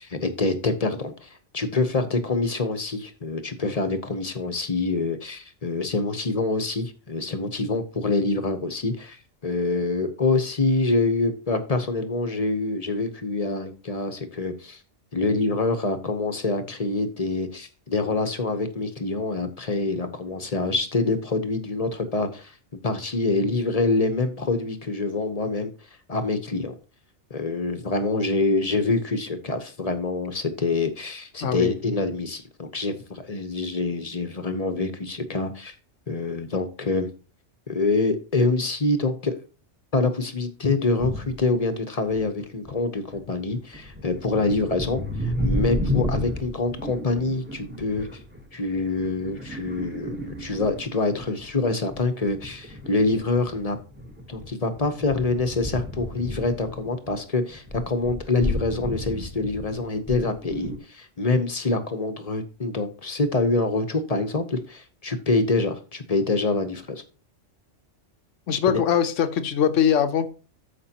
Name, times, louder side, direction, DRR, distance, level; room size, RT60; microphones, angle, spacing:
voice 1, 0.0-9.2 9.4-14.8 15.1-22.5 22.8-25.7 26.1-26.8 27.3-35.7 36.1-37.1 37.7-39.3 39.9-48.1 48.5-53.8 54.3-67.0 68.7-68.8, left 3 dB, 35° left, 9 dB, 0.9 m, -26 dB
voice 2, 31.4-31.7 68.5-70.3, left 8 dB, 85° left, 10 dB, 1.2 m, -22 dB
sound 1, 41.0-41.4 42.1-42.7 43.1-51.5 51.9-57.2 57.5-60.8, left 1 dB, 10° right, 1.1 m, -32 dB
13.5 x 5.2 x 2.9 m, 0.35 s
omnidirectional pair, 1.3 m